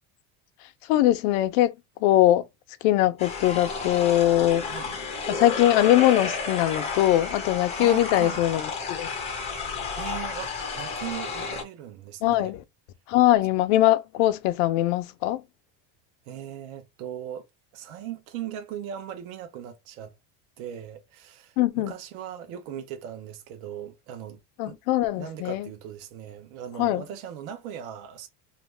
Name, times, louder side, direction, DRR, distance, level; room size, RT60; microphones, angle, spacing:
voice 1, 0.9-1.7 2.0-2.4 2.8-4.6 5.3-9.1 12.2-12.6 13.1-15.4 21.6-21.9 24.6-25.7 26.8-27.0, left 14 dB, 85° left, 0.6 m, -21 dB
sound 1, 3.2-11.6, left 5 dB, 15° left, 0.4 m, -32 dB
voice 2, 7.8-8.4 9.9-12.5 16.3-17.5 17.7-20.2 20.6-24.8 25.1-28.3, right 9 dB, 75° right, 0.8 m, -39 dB
2.5 x 2.1 x 3.2 m
cardioid pair, 180°, 42 cm